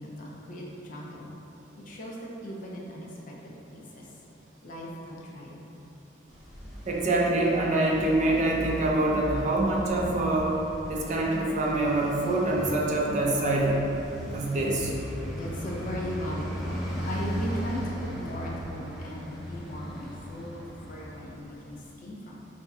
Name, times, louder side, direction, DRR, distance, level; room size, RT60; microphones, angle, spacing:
voice 1, 0.0-1.3 1.8-4.1 4.6-5.6 15.3-22.5, equal, 50° left, -3 dB, 0.5 m, -38 dB
Traffic noise roadway noise, 6.3-21.8, equal, ahead, 0.7 m, -37 dB
voice 2, 6.9-10.5 10.9-13.8 14.2-14.9, right 2 dB, 45° right, -2 dB, 0.4 m, -25 dB
4.1 x 2.6 x 2.3 m, 2.9 s
head